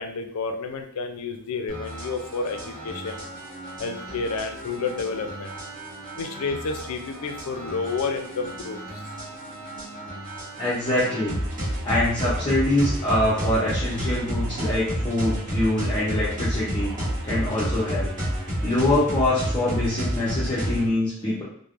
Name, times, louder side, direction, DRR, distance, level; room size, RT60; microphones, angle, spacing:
voice 1, 0.0-3.2 3.8-5.5 6.2-9.0, left 4 dB, 85° left, 6 dB, 0.4 m, -30 dB
sound 1, 1.7-20.9, equal, 40° right, 1.0 m, -31 dB
voice 2, 10.6-11.3 11.8-16.9 17.2-18.1 18.6-21.4, left 1 dB, 25° left, -9 dB, 0.6 m, -24 dB
3.1 x 2.0 x 2.4 m, 0.63 s
head